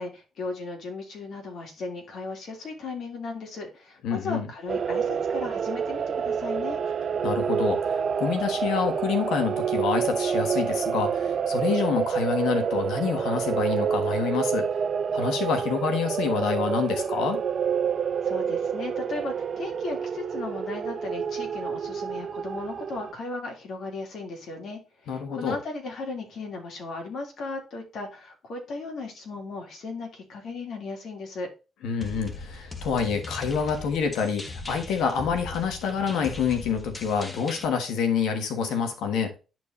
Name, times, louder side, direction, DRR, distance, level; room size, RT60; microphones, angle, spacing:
voice 1, 0.0-6.8 18.2-31.5, left 3 dB, 65° left, 2 dB, 2.8 m, -36 dB
voice 2, 4.0-4.5 7.2-14.7 15.1-17.4 25.1-25.6 31.8-39.3, left 6 dB, 85° left, 6 dB, 1.4 m, -27 dB
sound 1, 4.7-23.1, right 7 dB, 50° right, 0.4 m, -28 dB
sound 2, 32.0-37.6, left 2 dB, 25° left, 1.1 m, -39 dB
10.5 x 4.6 x 2.7 m, 0.31 s
cardioid pair, 90°, 0 cm